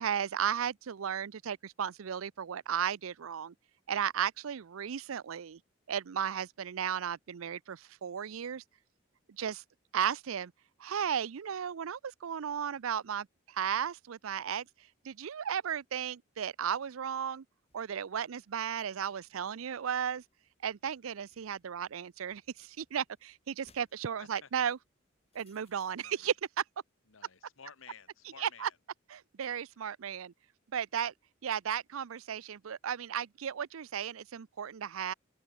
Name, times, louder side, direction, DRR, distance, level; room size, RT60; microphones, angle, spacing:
voice 1, 0.0-3.5 3.9-5.6 5.9-8.6 9.3-9.6 9.9-10.5 10.8-14.7 15.0-17.4 17.7-20.2 20.6-24.8 25.3-26.3 28.4-28.7 29.1-30.3 30.7-31.1 31.4-35.1, right 8 dB, 90° right, 0.5 m, -35 dB
sound 1, 17.7-26.0, left 4 dB, 30° left, 2.6 m, -73 dB
voice 2, 24.2-24.5 26.0-26.3 27.1-28.8, left 6 dB, 80° left, 1.4 m, -54 dB
open air
head